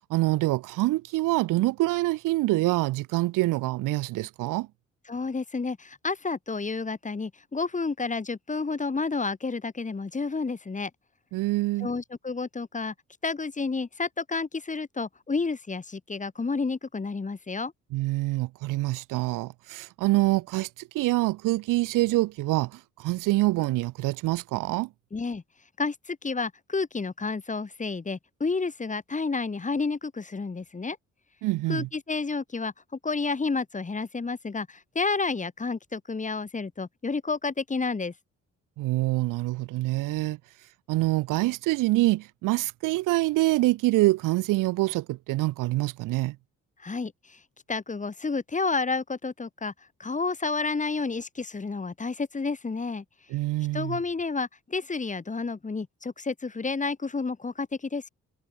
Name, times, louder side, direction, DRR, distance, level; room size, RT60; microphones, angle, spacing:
voice 1, 0.1-4.7 11.3-11.9 17.9-20.7 20.9-24.9 31.4-31.9 38.8-40.4 40.9-46.4 53.3-54.0, right 19 dB, 85° right, 0.8 m, -25 dB
voice 2, 5.1-10.9 11.8-12.9 13.2-17.7 25.1-25.4 25.8-31.0 31.7-32.7 33.0-38.1 46.8-47.4 47.7-49.7 50.0-53.0 53.7-58.1, left 4 dB, 25° left, 1.3 m, -30 dB
supercardioid pair, 60°, 31 cm